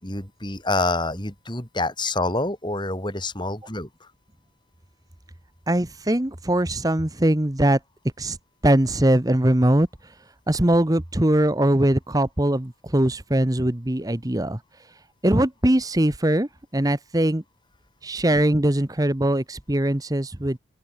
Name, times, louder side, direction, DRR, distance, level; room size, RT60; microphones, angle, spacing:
voice 1, 0.0-4.1, left 2 dB, 25° left, 5.3 m, -27 dB
voice 2, 5.7-7.8 8.2-8.4 8.6-17.4 18.0-20.6, right 1 dB, 20° right, 1.1 m, -22 dB
open air
head